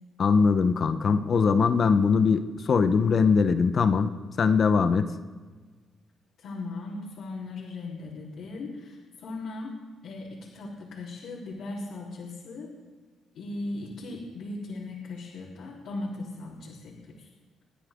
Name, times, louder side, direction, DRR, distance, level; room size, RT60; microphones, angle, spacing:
voice 1, 0.2-4.1 4.4-5.1, left 5 dB, 50° left, 10 dB, 1.1 m, -21 dB
voice 2, 6.4-12.8 13.3-17.3, left 2 dB, 75° left, -7 dB, 4.1 m, -38 dB
29.0 x 10.0 x 3.8 m, 1.4 s
cardioid pair, 90°, 0 cm